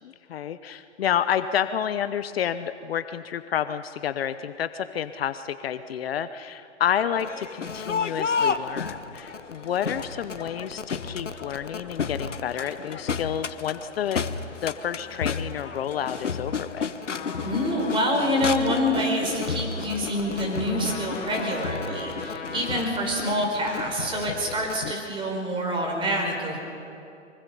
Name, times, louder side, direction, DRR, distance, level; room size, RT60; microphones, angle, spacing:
voice 1, 0.0-14.3 14.6-16.9, left 9 dB, 55° left, 12 dB, 0.9 m, -29 dB
Crowd, 7.2-24.9, left 5 dB, 90° left, 1.2 m, -32 dB
Trumpet, 17.0-23.3, left 2 dB, 25° left, 3.8 m, -40 dB
voice 2, 17.4-26.6, equal, 15° right, 1 dB, 4.6 m, -26 dB
24.0 x 23.5 x 5.6 m, 2.6 s
hypercardioid pair, 130°, 35 cm